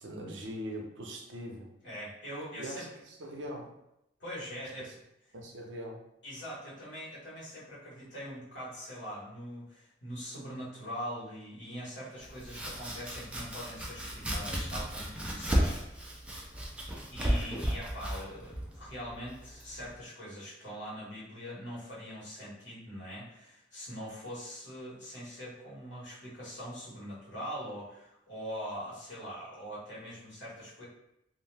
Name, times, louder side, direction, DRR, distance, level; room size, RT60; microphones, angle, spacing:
voice 1, 0.0-1.7 2.5-2.9 3.2-3.7 5.3-6.0, equal, 75° right, 1 dB, 0.6 m, -41 dB
voice 2, 1.8-2.9 4.2-5.0 6.2-16.1 17.1-30.8, equal, 70° left, -7 dB, 1.4 m, -42 dB
Domestic sounds home sounds, 12.2-19.9, equal, 5° right, 0.4 m, -34 dB
2.7 x 2.1 x 3.2 m, 0.83 s
head